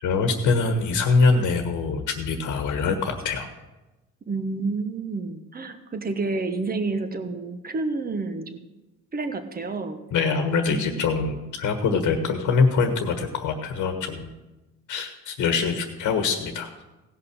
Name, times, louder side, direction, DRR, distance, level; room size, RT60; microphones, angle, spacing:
voice 1, 0.0-3.5 10.1-14.3 14.9-16.8, left 4 dB, 80° left, 5 dB, 1.4 m, -24 dB
voice 2, 4.3-8.6 9.1-10.0 10.7-11.2, right 3 dB, 30° right, 8 dB, 1.2 m, -29 dB
17.0 x 5.8 x 6.2 m, 1.1 s
cardioid pair, 90°, 30 cm